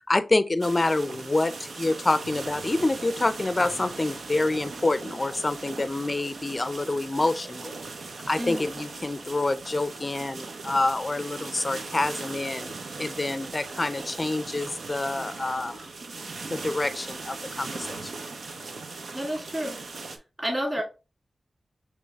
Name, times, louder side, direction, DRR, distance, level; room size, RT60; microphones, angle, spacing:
voice 1, 0.1-7.7 8.3-12.7 13.0-15.9 16.5-18.0, left 2 dB, 35° left, 0.4 m, -27 dB
sound 1, 0.6-20.2, right 3 dB, 85° right, 0.6 m, -39 dB
voice 2, 8.4-8.7 19.1-19.8 20.4-20.8, equal, 15° right, 2.4 m, -30 dB
6.1 x 3.1 x 2.3 m
wide cardioid pair, 65°, 0 cm